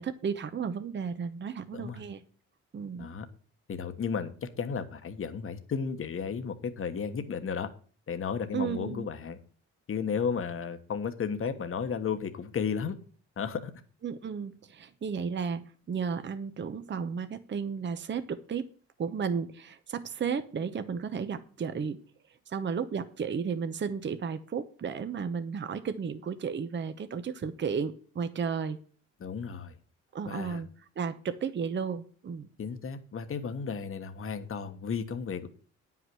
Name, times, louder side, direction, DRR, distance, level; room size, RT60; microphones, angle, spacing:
voice 1, 0.0-2.2 2.7-3.1 8.5-9.1 14.0-18.7 19.0-22.0 22.5-28.8 30.1-30.7 31.0-32.5, right 6 dB, 40° right, 10 dB, 0.9 m, -33 dB
voice 2, 3.7-7.7 8.1-9.4 9.9-13.0 13.4-13.7 29.2-29.7 30.3-30.6 32.6-35.5, left 6 dB, 45° left, 8 dB, 1.3 m, -33 dB
9.5 x 5.8 x 7.7 m, 0.42 s
cardioid pair, 90°, 30 cm